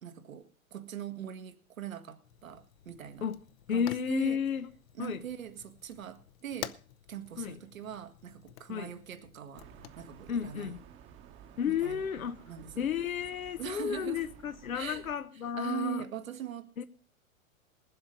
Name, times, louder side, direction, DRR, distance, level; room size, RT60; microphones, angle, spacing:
voice 1, 0.0-3.3 3.7-4.4 4.9-6.8 7.1-10.8 11.7-12.0 12.5-12.9 13.6-14.3 14.7-15.1 15.6-16.7, right 10 dB, 70° right, 1.7 m, -41 dB
Fire, 2.2-10.6, left 13 dB, 45° left, 0.8 m, -49 dB
voice 2, 3.7-4.7 5.0-5.2 7.4-7.6 8.7-8.9 10.3-10.8 11.6-12.4 12.8-16.0 16.8-16.9, left 7 dB, 75° left, 0.9 m, -32 dB
sound 1, 9.5-15.2, right 8 dB, 25° right, 1.2 m, -53 dB
20.0 x 7.8 x 5.2 m
figure-of-eight pair, 110°, 42 cm